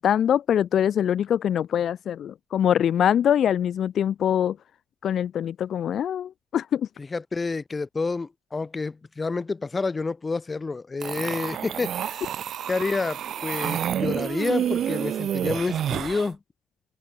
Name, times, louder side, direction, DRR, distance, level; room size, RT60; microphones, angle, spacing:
voice 1, 0.0-4.6 5.0-6.9, left 9 dB, 65° left, 0.8 m, -23 dB
voice 2, 7.0-12.3 12.7-16.4, left 4 dB, 25° left, 5.8 m, -29 dB
sound 1, 11.0-16.3, right 10 dB, 65° right, 1.5 m, -29 dB
open air
cardioid pair, 90°, 0 cm